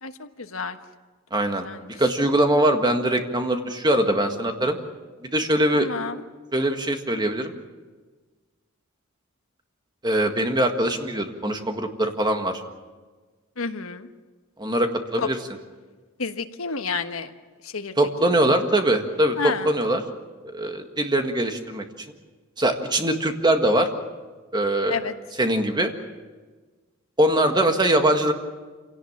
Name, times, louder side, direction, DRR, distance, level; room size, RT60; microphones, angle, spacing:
voice 1, 0.0-0.8 1.6-1.9 5.7-6.2 13.6-14.1 15.2-15.3 16.2-17.3 17.6-18.0 19.4-19.7 24.9-25.1, left 4 dB, 75° left, 8 dB, 1.3 m, -30 dB
voice 2, 1.3-1.6 2.0-4.8 5.3-5.9 6.5-7.5 10.0-12.5 14.6-15.4 18.0-20.0 20.5-21.8 22.6-23.9 24.5-25.0 25.4-25.9 27.2-28.3, right 1 dB, 20° right, 5 dB, 1.8 m, -22 dB
27.0 x 17.5 x 7.4 m, 1.4 s
head